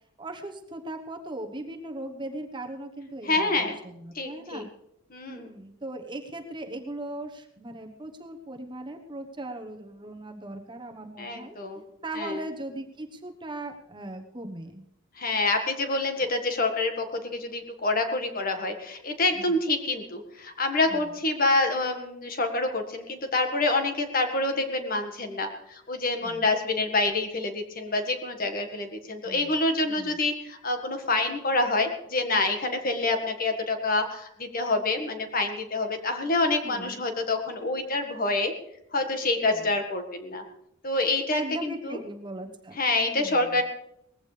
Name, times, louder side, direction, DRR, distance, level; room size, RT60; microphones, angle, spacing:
voice 1, 0.2-4.7 5.3-11.5 12.0-14.8 19.3-19.6 20.8-21.2 26.2-26.6 29.2-29.5 29.8-30.2 36.6-37.0 39.4-39.7 41.3-42.8 43.1-43.6, right 1 dB, 25° right, 4 dB, 1.1 m, -39 dB
voice 2, 3.2-3.8 4.1-4.6 5.1-5.5 11.2-11.8 12.1-12.4 15.1-38.5 38.9-40.4 40.8-42.0 42.8-43.6, left 2 dB, 45° left, 5 dB, 1.7 m, -27 dB
19.5 x 15.5 x 3.4 m, 0.78 s
head